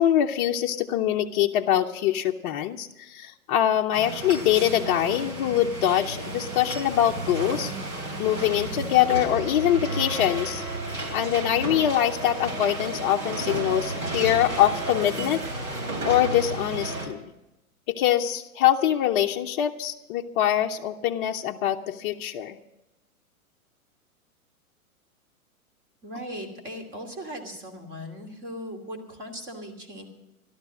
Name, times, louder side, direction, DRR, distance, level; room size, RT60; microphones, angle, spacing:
voice 1, 0.0-7.7 8.2-10.6 11.1-15.4 16.0-17.2 17.9-22.6, left 11 dB, 35° left, 2 dB, 0.6 m, -24 dB
sound 1, 3.9-17.1, right 2 dB, 90° right, 3.5 m, -32 dB
voice 2, 26.0-30.1, equal, 25° right, 4 dB, 2.7 m, -38 dB
14.0 x 12.5 x 6.2 m, 0.95 s
hypercardioid pair, 110°, 43 cm